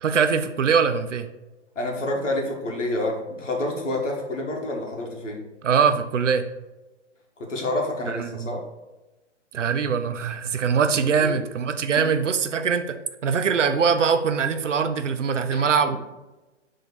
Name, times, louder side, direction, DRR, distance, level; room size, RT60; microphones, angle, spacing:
voice 1, 0.0-1.3 5.6-6.5 8.1-8.6 9.5-13.0 13.2-16.0, right 6 dB, 85° right, 9 dB, 0.7 m, -22 dB
voice 2, 1.8-5.4 7.4-8.6 11.2-11.3 12.0-12.1 15.5-15.7, left 1 dB, 85° left, 0 dB, 1.8 m, -28 dB
6.8 x 3.8 x 4.1 m, 1.1 s
hypercardioid pair, 135°, 36 cm